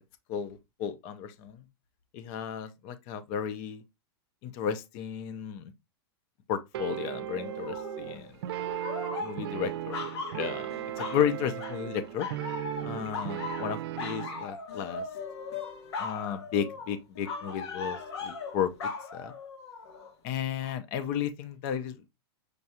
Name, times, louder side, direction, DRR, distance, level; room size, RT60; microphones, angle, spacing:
voice 1, 0.3-1.7 2.1-3.8 4.4-5.7 6.5-8.4 9.2-10.0 10.3-12.3 12.8-15.1 16.0-18.7 19.1-19.3 20.2-22.0, left 8 dB, 35° left, 0.6 m, -33 dB
sound 1, 6.7-14.5, right 13 dB, 65° right, 0.6 m, -37 dB
sound 2, 7.4-8.2 8.5-11.3 11.6-11.9 12.2-20.1 20.6-20.8, left 4 dB, 85° left, 1.5 m, -39 dB
6.6 x 2.3 x 2.8 m
supercardioid pair, 165°, 14 cm